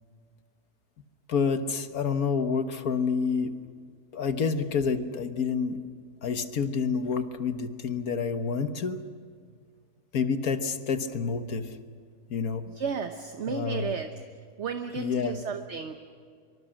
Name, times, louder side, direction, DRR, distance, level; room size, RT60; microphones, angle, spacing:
voice 1, 1.3-3.5 4.1-5.8 6.2-9.0 10.1-11.8 12.3-12.6 13.5-14.0 14.9-15.4, left 5 dB, 65° left, 9 dB, 1.6 m, -28 dB
voice 2, 12.6-14.1 14.6-15.9, right 6 dB, 50° right, 6 dB, 1.2 m, -33 dB
25.5 x 23.5 x 6.4 m, 2.1 s
omnidirectional pair, 1.7 m